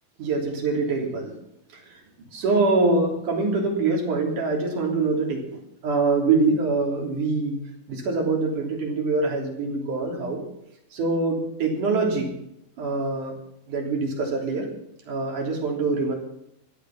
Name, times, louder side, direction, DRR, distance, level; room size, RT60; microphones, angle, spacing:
voice 1, 0.2-1.3 1.7-2.0 2.3-7.6 7.9-10.4 10.9-12.3 12.8-13.3 13.7-14.7 15.1-16.1, right 3 dB, 60° right, 1 dB, 4.7 m, -24 dB
16.0 x 12.0 x 6.1 m, 0.78 s
omnidirectional pair, 4.1 m